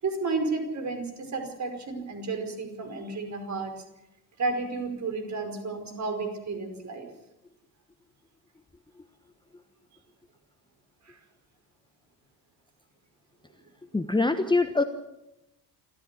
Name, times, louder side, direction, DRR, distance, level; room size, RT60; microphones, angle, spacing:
voice 1, 0.0-3.8 4.4-7.1 11.0-11.2, right 3 dB, 35° right, 6 dB, 5.1 m, -32 dB
voice 2, 13.9-14.8, left 3 dB, 10° left, 8 dB, 1.2 m, -23 dB
27.0 x 14.0 x 6.9 m, 0.93 s
figure-of-eight pair, 55°, 49 cm